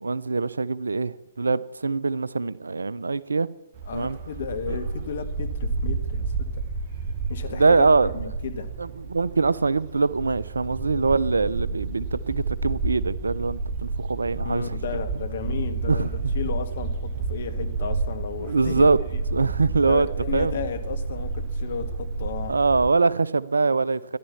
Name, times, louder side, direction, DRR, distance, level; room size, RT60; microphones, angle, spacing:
voice 1, 0.0-3.5 3.9-4.2 4.7-4.8 7.5-8.1 8.8-14.7 15.9-16.3 18.4-19.0 19.3-20.1 20.3-20.6 22.5-24.2, right 4 dB, 75° right, 19 dB, 0.6 m, -23 dB
Bark, 3.7-22.9, right 4 dB, 40° right, 1.5 m, -30 dB
voice 2, 3.8-6.6 7.3-8.7 14.4-18.9 19.8-22.6, left 6 dB, 55° left, 9 dB, 1.7 m, -33 dB
13.5 x 11.0 x 7.1 m, 0.93 s
figure-of-eight pair, 125°, 0 cm